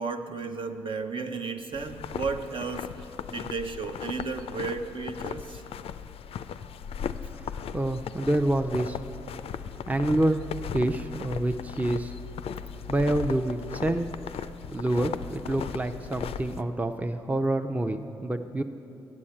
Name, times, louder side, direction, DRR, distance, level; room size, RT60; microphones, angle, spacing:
voice 1, 0.0-2.9 3.3-5.6, right 4 dB, 55° right, 5 dB, 0.7 m, -33 dB
sound 1, 1.7-16.6, left 8 dB, 65° left, 0.4 m, -37 dB
voice 2, 7.3-9.0 9.9-12.1 12.9-14.1 14.7-18.6, right 1 dB, 15° right, 7 dB, 0.5 m, -27 dB
8.5 x 7.1 x 8.6 m, 2.7 s
supercardioid pair, 40°, 11 cm